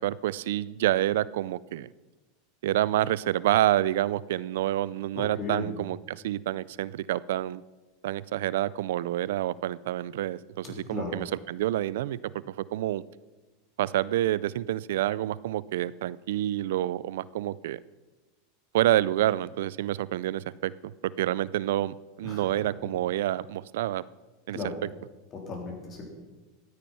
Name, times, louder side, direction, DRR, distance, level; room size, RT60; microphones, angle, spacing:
voice 1, 0.0-1.9 2.6-7.6 8.0-12.2 12.5-13.0 13.8-17.8 18.7-24.0 24.5-24.7, right 13 dB, 80° right, 20 dB, 0.4 m, -28 dB
voice 2, 5.1-5.7 10.6-11.1 22.2-22.4 24.5-24.7 25.3-26.1, left 3 dB, 35° left, 1 dB, 3.5 m, -36 dB
12.5 x 9.2 x 5.6 m, 1.2 s
supercardioid pair, 125°, 0 cm